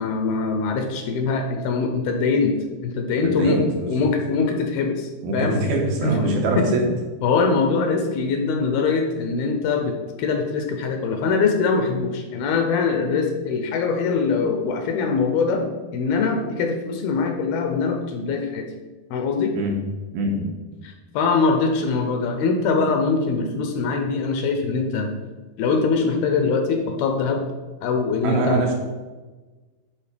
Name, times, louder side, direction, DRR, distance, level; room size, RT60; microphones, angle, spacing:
voice 1, 0.0-2.6 2.8-3.6 3.9-5.6 6.0-6.7 7.2-15.6 15.9-18.7 19.1-19.5 20.8-25.1 25.6-27.4 27.8-28.6, left 4 dB, 75° left, 4 dB, 2.5 m, -23 dB
voice 2, 3.2-4.1 5.2-6.9 19.5-19.7 20.1-20.5 28.2-28.7, right 2 dB, 75° right, 0 dB, 2.5 m, -23 dB
10.5 x 3.7 x 5.1 m, 1.3 s
omnidirectional pair, 4.7 m